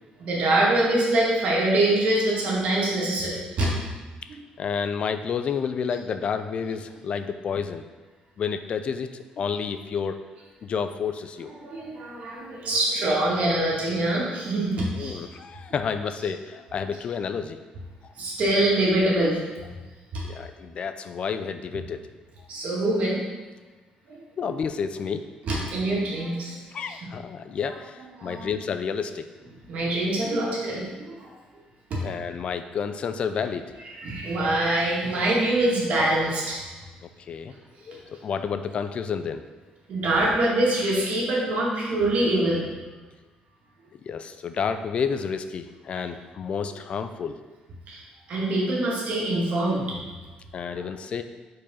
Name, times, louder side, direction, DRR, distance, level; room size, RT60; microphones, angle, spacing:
voice 1, 0.2-4.0 4.3-4.4 11.4-15.2 18.2-19.4 20.1-20.2 22.5-23.2 24.1-24.2 25.4-26.6 26.9-27.0 28.2-28.6 29.7-31.3 33.9-36.6 39.9-42.8 47.9-48.0 48.3-50.0 50.7-50.9, right 1 dB, 60° right, -4 dB, 2.0 m, -24 dB
voice 2, 4.6-7.8 8.4-10.2 10.6-11.5 14.9-17.6 20.2-22.0 24.4-25.2 26.7-29.3 32.0-33.7 37.0-37.5 37.9-39.4 44.1-47.4 50.5-51.2, left 6 dB, 45° left, 9 dB, 0.4 m, -30 dB
5.0 x 4.6 x 5.5 m, 1.3 s
cardioid pair, 135°, 3 cm